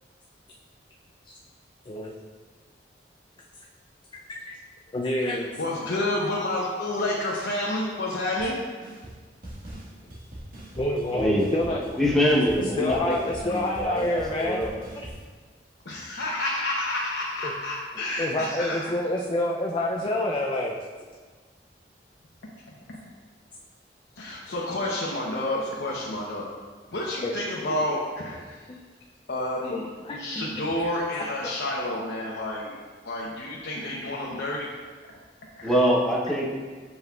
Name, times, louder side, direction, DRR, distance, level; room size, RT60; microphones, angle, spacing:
voice 1, 4.9-5.5 10.8-11.8 12.8-14.6 17.4-17.5 18.2-20.7 27.2-27.3 28.7-28.8 30.0-30.5 31.2-31.3 31.9-32.0, left 1 dB, 30° left, -2 dB, 0.4 m, -27 dB
voice 2, 5.6-8.6 15.8-18.8 22.9-23.1 24.2-26.4 26.9-28.6 29.3-29.9 30.2-32.7 33.0-34.7 35.6-35.7, left 1 dB, 80° left, -4 dB, 0.8 m, -29 dB
sound 1, 8.4-8.5 8.8-9.2 9.4-15.2, right 1 dB, 55° right, 1.5 m, -42 dB
voice 3, 11.1-11.5 11.9-14.7 35.6-36.5, equal, 5° left, -5 dB, 0.9 m, -24 dB
7.9 x 5.3 x 2.3 m, 1.5 s
head